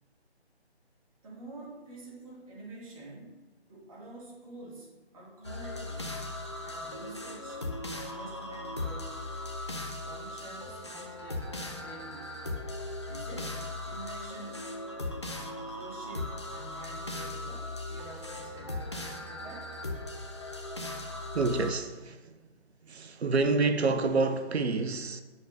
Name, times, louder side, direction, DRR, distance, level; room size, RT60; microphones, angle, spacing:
voice 1, 1.2-3.4 3.7-6.2 6.6-7.6 8.0-9.2 10.0-12.4 13.1-13.6 13.8-14.7 15.7-19.7, right 2 dB, 30° right, 2.2 m, -47 dB
sound 1, 5.4-21.7, left 2 dB, 25° left, 0.5 m, -38 dB
voice 2, 21.3-22.4 22.8-25.2, right 3 dB, 75° right, 0.7 m, -28 dB
7.9 x 7.1 x 2.6 m
figure-of-eight pair, 155°, 33 cm